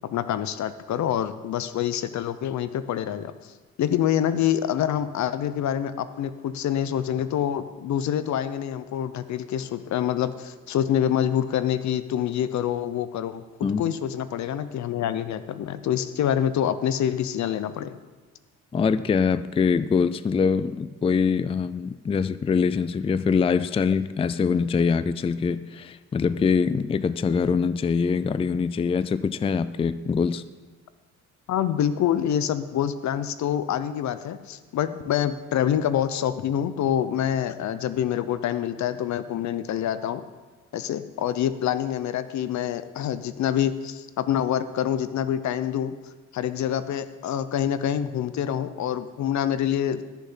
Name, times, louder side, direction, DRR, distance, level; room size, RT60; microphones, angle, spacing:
voice 1, 0.0-3.3 3.8-18.0 31.5-40.2 40.7-45.9 46.3-50.0, left 10 dB, 65° left, 13 dB, 0.7 m, -26 dB
voice 2, 18.7-30.4, left 5 dB, 20° left, 14 dB, 0.4 m, -24 dB
13.5 x 7.2 x 5.6 m, 1.3 s
cardioid pair, 90°, 30 cm